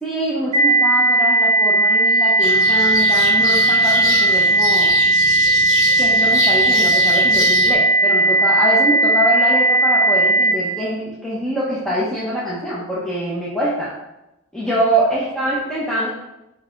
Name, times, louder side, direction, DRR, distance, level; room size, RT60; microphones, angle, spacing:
voice 1, 0.0-4.9 6.0-13.9 14.5-16.1, equal, 5° left, -9 dB, 0.6 m, -23 dB
sound 1, 0.5-10.5, right 2 dB, 30° right, 0.8 m, -16 dB
sound 2, 2.4-7.7, left 1 dB, 60° left, 1.0 m, -26 dB
4.4 x 3.9 x 2.4 m, 0.92 s
head